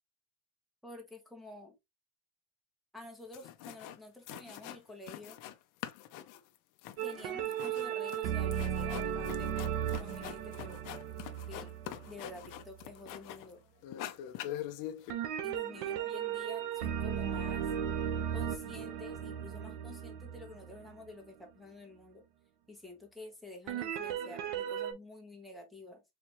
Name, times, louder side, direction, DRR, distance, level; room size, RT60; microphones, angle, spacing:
voice 1, 0.8-1.7 2.9-5.4 7.0-9.5 10.0-10.8 11.5-11.7 12.0-13.6 15.4-17.7 18.3-22.2 22.7-26.0, left 2 dB, ahead, 1.1 m, -49 dB
sound 1, 3.0-3.1 3.3-4.0 4.3-5.6 5.8-13.5 13.8-15.1, left 12 dB, 45° left, 0.6 m, -44 dB
sound 2, 7.0-12.7 15.1-21.0 23.7-24.9, right 9 dB, 70° right, 1.1 m, -36 dB
4.5 x 3.5 x 3.0 m
cardioid pair, 170°, 48 cm